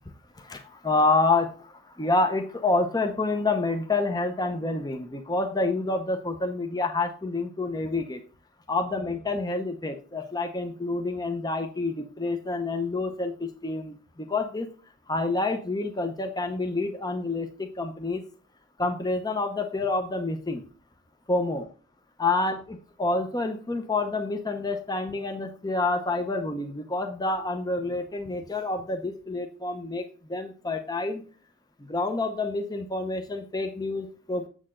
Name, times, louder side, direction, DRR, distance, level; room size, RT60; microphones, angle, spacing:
voice 1, 0.4-8.2 8.7-14.7 15.1-18.2 18.8-20.6 21.3-21.6 22.2-31.2 31.9-34.5, left 3 dB, 20° left, 6 dB, 0.7 m, -28 dB
7.5 x 6.5 x 3.8 m, 0.38 s
head